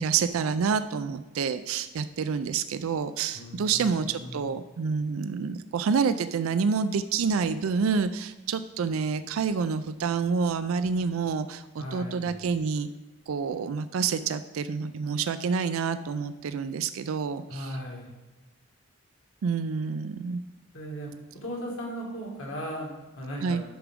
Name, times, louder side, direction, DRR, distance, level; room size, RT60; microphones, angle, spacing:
voice 1, 0.0-12.9 13.3-17.7 19.4-20.4 23.4-23.6, right 5 dB, 85° right, 12 dB, 0.4 m, -28 dB
voice 2, 3.3-4.5 11.8-12.4 17.5-18.1 20.7-23.6, equal, 75° left, -1 dB, 2.2 m, -37 dB
10.0 x 6.0 x 3.6 m, 1.1 s
head